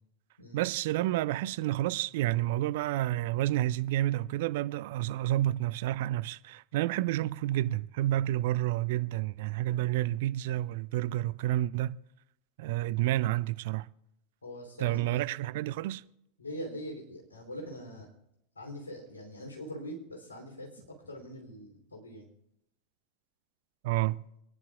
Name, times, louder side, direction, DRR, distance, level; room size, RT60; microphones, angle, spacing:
voice 1, 0.5-12.0 12.6-13.9 14.8-16.0 23.8-24.2, right 14 dB, 55° right, 0.4 m, -30 dB
voice 2, 14.4-15.2 16.4-18.1 18.5-22.3, equal, 80° left, 3.2 m, -43 dB
26.0 x 10.5 x 2.4 m
figure-of-eight pair, 85°, 0 cm